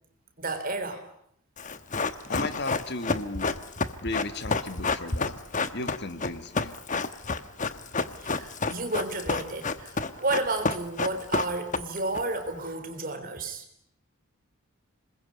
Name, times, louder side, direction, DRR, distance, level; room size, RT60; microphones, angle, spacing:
voice 1, 0.4-1.0 8.2-13.6, right 2 dB, 40° right, 7 dB, 3.8 m, -31 dB
Run, 1.6-12.2 12.5-12.6, left 3 dB, 35° left, 1.1 m, -29 dB
voice 2, 2.3-3.6 4.0-5.4 5.7-6.7, left 2 dB, 50° left, 10 dB, 1.7 m, -35 dB
26.5 x 21.5 x 9.7 m, 0.73 s
head